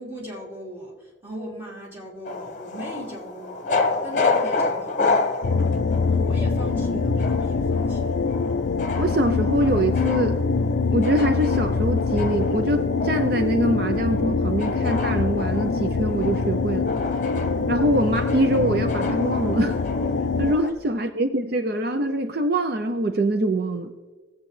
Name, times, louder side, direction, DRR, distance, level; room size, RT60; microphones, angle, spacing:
voice 1, 0.0-3.7 4.0-5.2 6.1-8.2, equal, 10° right, -5 dB, 2.9 m, -38 dB
sound 1, 2.2-20.7, left 3 dB, 40° left, 1.0 m, -30 dB
sound 2, 5.4-20.5, left 4 dB, 75° left, 0.5 m, -24 dB
voice 2, 9.0-10.4 10.9-16.9 17.7-19.8 20.4-23.9, right 1 dB, 55° right, 7 dB, 0.5 m, -24 dB
20.0 x 8.1 x 3.2 m, 1.3 s
head